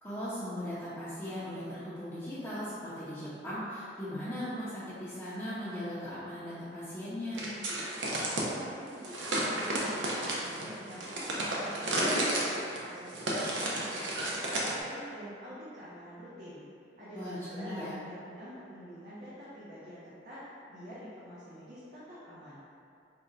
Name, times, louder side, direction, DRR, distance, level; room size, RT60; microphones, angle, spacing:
voice 1, 0.0-7.5 17.1-18.0, equal, 10° left, -14 dB, 0.6 m, -38 dB
sound 1, 7.3-8.5 9.0-14.8, right 1 dB, 90° right, 0.6 m, -32 dB
voice 2, 8.4-16.6 17.0-22.6, equal, 50° right, -10 dB, 0.7 m, -47 dB
3.7 x 2.2 x 3.9 m, 2.6 s
head